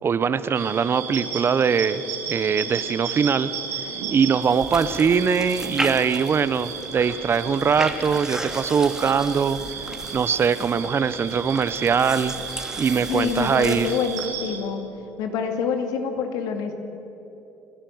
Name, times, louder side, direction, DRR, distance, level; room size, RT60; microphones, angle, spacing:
voice 1, 0.0-2.0 2.3-3.5 3.8-9.6 9.8-12.3 12.8-13.9, right 6 dB, 35° right, 15 dB, 0.9 m, -22 dB
sound 1, 0.5-14.6, right 6 dB, 85° right, 6.0 m, -34 dB
sound 2, 4.4-14.3, right 1 dB, 10° right, 2.5 m, -35 dB
voice 2, 13.1-14.8 15.2-16.7, left 6 dB, 70° left, 6 dB, 2.3 m, -26 dB
29.5 x 11.5 x 8.0 m, 3.0 s
hypercardioid pair, 75°, 7 cm